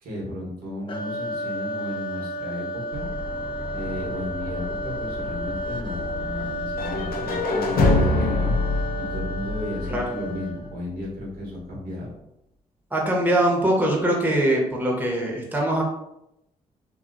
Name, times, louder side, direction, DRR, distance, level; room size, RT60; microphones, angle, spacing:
voice 1, 0.0-3.0 3.7-8.8 9.1-12.1, left 1 dB, 80° right, -4 dB, 1.2 m, -34 dB
sound 1, 0.9-10.8, equal, 35° left, 0.4 m, -32 dB
sound 2, 2.9-8.9, left 2 dB, 10° left, 1.1 m, -38 dB
sound 3, 6.8-10.7, left 2 dB, 70° left, 0.6 m, -24 dB
voice 2, 12.9-15.8, right 1 dB, 10° right, -2 dB, 1.0 m, -22 dB
2.8 x 2.7 x 2.5 m, 0.84 s
supercardioid pair, 60°, 16 cm